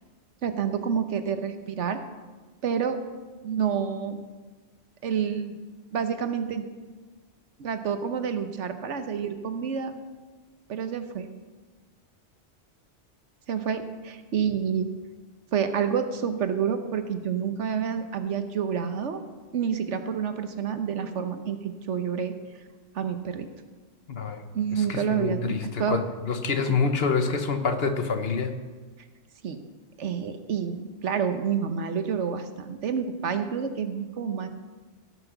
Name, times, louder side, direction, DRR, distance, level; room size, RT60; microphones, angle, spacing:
voice 1, 0.4-2.0 2.6-3.0 3.4-4.2 5.0-5.6 5.9-6.6 7.6-9.9 10.7-11.3 13.5-14.9 15.5-19.2 19.5-22.3 22.9-23.5 24.5-26.0 26.7-26.8 29.4-29.6 30.0-34.5, right 7 dB, 85° right, 8 dB, 1.3 m, -28 dB
voice 2, 24.1-28.5, left 4 dB, 60° left, 7 dB, 1.3 m, -27 dB
16.5 x 6.3 x 6.8 m, 1.3 s
omnidirectional pair, 1.2 m